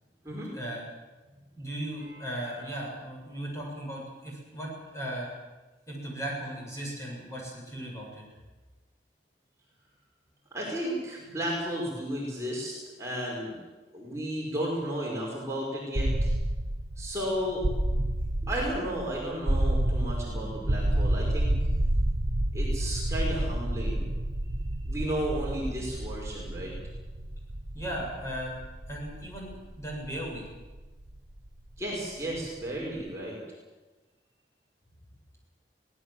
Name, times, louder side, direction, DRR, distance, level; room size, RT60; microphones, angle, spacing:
voice 1, 0.3-0.8 1.6-5.3 5.9-8.2 27.7-28.5 28.9-30.5, right 1 dB, 15° left, -3 dB, 7.5 m, -37 dB
voice 2, 10.5-13.6 13.9-16.3 17.0-17.7 18.4-21.5 22.5-24.0 24.8-26.7 31.8-33.4, equal, 15° right, -4 dB, 5.3 m, -33 dB
sound 1, 15.9-31.8, right 1 dB, 80° right, 1.4 m, -30 dB
24.0 x 18.0 x 7.8 m, 1.2 s
head